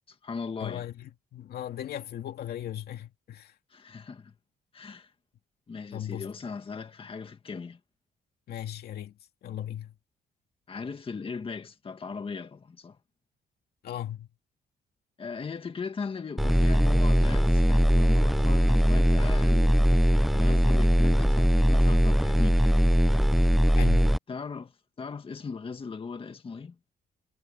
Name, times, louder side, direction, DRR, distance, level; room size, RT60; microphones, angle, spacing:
voice 1, 0.1-0.9 3.7-4.3 4.7-5.1 5.7-7.8 10.7-13.0 15.2-22.6 24.3-26.8, left 5 dB, 35° left, 2.0 m, -38 dB
voice 2, 0.6-3.5 5.9-6.3 8.5-9.1 9.4-9.9 13.8-14.3 23.8-24.1, left 11 dB, 75° left, 2.4 m, -37 dB
sound 1, 16.4-24.2, equal, ahead, 0.3 m, -21 dB
cardioid pair, 100°, 16 cm